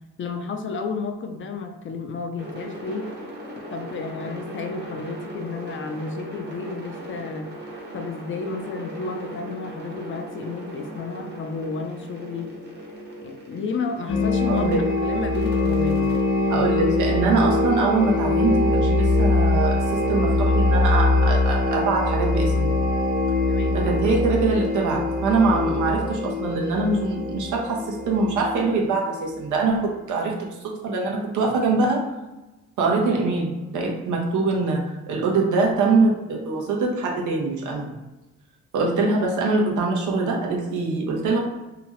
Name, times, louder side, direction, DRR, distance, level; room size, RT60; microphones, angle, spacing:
voice 1, 0.2-3.1 3.7-7.5 7.9-12.6 13.2-16.2 23.5-23.8, left 4 dB, 40° left, 4 dB, 0.5 m, -32 dB
sound 1, 2.4-14.7 15.3-17.5, right 1 dB, 35° right, 1.0 m, -39 dB
sound 2, 14.1-29.6, left 2 dB, 80° left, 0.8 m, -23 dB
voice 2, 14.5-14.8 16.5-22.7 23.7-32.1 32.8-38.0 38.7-41.4, right 3 dB, 75° right, -1 dB, 0.9 m, -23 dB
2.9 x 2.3 x 3.0 m, 1.1 s
cardioid pair, 90°, 30 cm